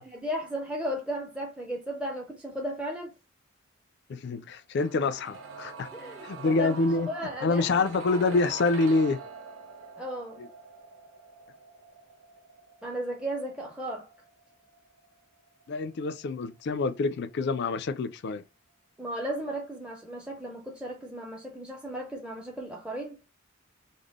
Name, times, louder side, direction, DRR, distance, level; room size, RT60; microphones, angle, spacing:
voice 1, 0.0-3.1 5.9-6.8 7.0-7.7 10.0-10.4 12.8-14.1 19.0-23.2, equal, 5° right, 0.5 m, -35 dB
voice 2, 4.1-5.9 6.2-7.1 7.4-9.2 10.4-10.5 15.7-18.4, left 3 dB, 55° left, 0.4 m, -26 dB
sound 1, 4.8-16.6 16.9-17.0, right 4 dB, 80° right, 0.7 m, -45 dB
3.5 x 2.0 x 3.5 m
head